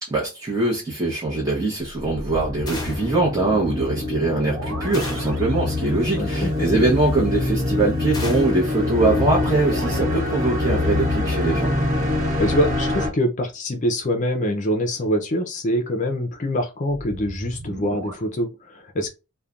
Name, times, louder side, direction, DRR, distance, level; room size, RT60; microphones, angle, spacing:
voice 1, 0.0-11.7, right 2 dB, 15° right, 0.8 m, -22 dB
sound 1, 1.9-6.3 9.1-11.2 16.8-18.1, right 2 dB, 75° right, 0.7 m, -37 dB
sound 2, 2.0-13.1, left 2 dB, 40° right, 1.0 m, -25 dB
sound 3, 2.7-3.2 4.9-5.5 8.1-8.6, left 2 dB, 20° left, 0.9 m, -34 dB
voice 2, 6.1-6.7 12.4-19.1, equal, 35° left, 0.5 m, -24 dB
3.1 x 2.2 x 2.4 m
head